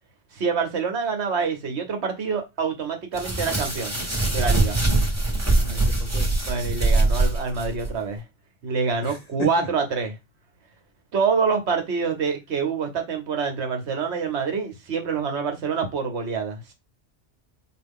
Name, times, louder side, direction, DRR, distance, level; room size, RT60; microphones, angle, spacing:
voice 1, 0.3-4.0 4.3-4.8 6.5-8.2 8.6-10.1 11.1-16.7, right 5 dB, 70° right, 1.2 m, -26 dB
sound 1, 3.1-7.9, right 2 dB, 15° right, 1.1 m, -22 dB
voice 2, 5.6-6.3 9.0-9.7, equal, 40° left, 0.8 m, -34 dB
4.6 x 2.5 x 3.6 m
omnidirectional pair, 1.2 m